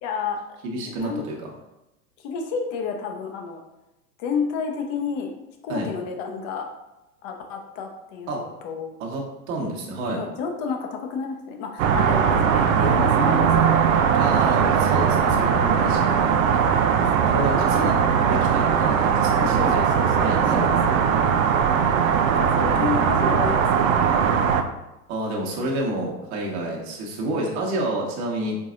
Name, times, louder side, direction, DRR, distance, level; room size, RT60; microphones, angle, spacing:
voice 1, 0.0-0.4 0.9-1.2 2.2-3.6 4.2-5.3 5.6-6.7 7.2-9.0 10.0-13.9 15.3-15.7 17.0-17.9 18.3-18.5 19.4-20.8 21.0-21.3 22.3-24.0 26.8-26.9, left 5 dB, 40° left, 3 dB, 1.0 m, -31 dB
voice 2, 0.6-1.4 5.7-5.9 8.3-8.4 9.0-9.2 9.5-10.2 14.1-16.3 17.3-17.9 18.3-19.9 20.2-20.6 25.1-28.6, right 2 dB, 40° right, -2 dB, 1.3 m, -29 dB
sound 1, 11.8-24.6, right 7 dB, 60° right, 0.6 m, -20 dB
4.9 x 4.0 x 2.5 m, 0.97 s
figure-of-eight pair, 95°, 46 cm